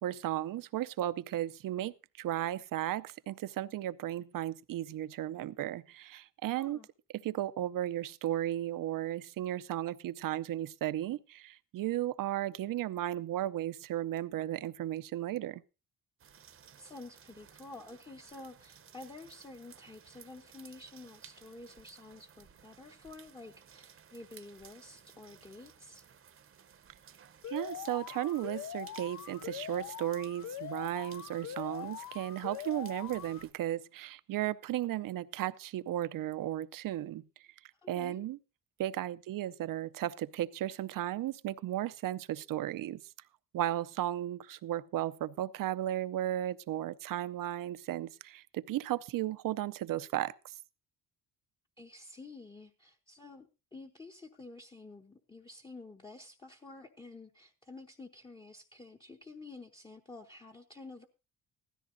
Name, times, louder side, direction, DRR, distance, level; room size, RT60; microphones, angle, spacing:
voice 1, 0.0-6.8 7.2-15.6 27.5-37.2 37.9-38.4 38.8-43.0 43.5-50.6, right 13 dB, 65° right, 0.6 m, -35 dB
voice 2, 6.6-6.9 16.8-26.0 37.8-38.2 51.8-61.1, left 2 dB, 15° left, 0.8 m, -50 dB
sound 1, 16.2-33.5, right 7 dB, 35° right, 0.8 m, -58 dB
Alarm, 27.4-33.4, left 10 dB, 55° left, 0.5 m, -43 dB
16.0 x 13.5 x 2.6 m
cardioid pair, 115°, 36 cm